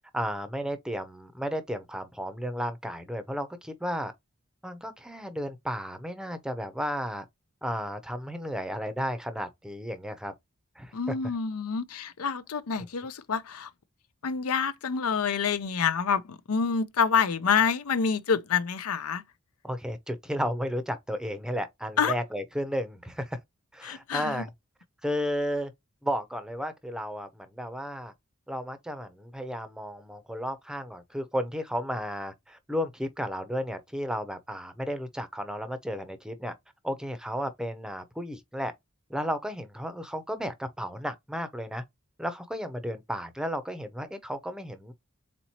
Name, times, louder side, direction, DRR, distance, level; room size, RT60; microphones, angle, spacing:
voice 1, 0.1-4.1 4.6-7.2 7.6-10.3 10.8-11.1 19.6-23.4 23.7-24.5 25.0-25.7 26.0-28.1 28.5-36.5 36.8-38.7 39.1-41.8 42.2-44.9, equal, 5° right, 0.6 m, -33 dB
voice 2, 10.9-13.7 14.2-19.2 22.0-22.2 23.8-24.4, left 6 dB, 80° left, 0.6 m, -27 dB
4.3 x 4.0 x 2.9 m
head